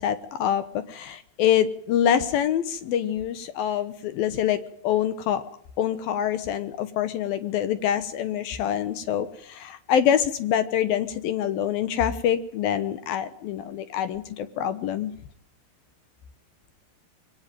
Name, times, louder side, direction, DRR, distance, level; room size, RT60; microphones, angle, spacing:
voice 1, 0.0-5.4 5.8-15.1, left 9 dB, 70° left, 12 dB, 2.6 m, -25 dB
22.5 x 18.0 x 9.0 m, 0.64 s
omnidirectional pair, 4.9 m